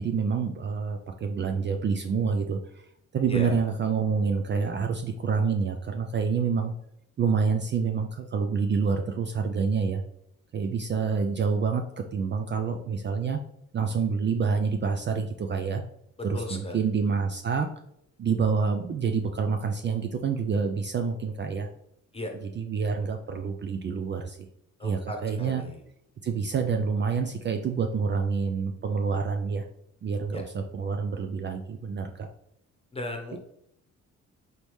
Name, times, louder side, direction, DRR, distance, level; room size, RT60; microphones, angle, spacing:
voice 1, 0.0-2.6 3.1-6.7 7.2-10.0 10.5-11.8 12.1-13.4 13.7-15.8 16.2-17.7 18.2-21.7 22.3-24.5 24.8-25.6 26.2-29.7 30.0-32.3 33.3-33.4, right 5 dB, 40° right, 5 dB, 0.4 m, -27 dB
voice 2, 16.3-16.8 22.1-22.3 24.8-25.8 30.3-30.4 32.9-33.4, left 1 dB, 20° left, 3 dB, 1.0 m, -36 dB
4.1 x 3.4 x 3.1 m, 0.74 s
cardioid pair, 90°, 30 cm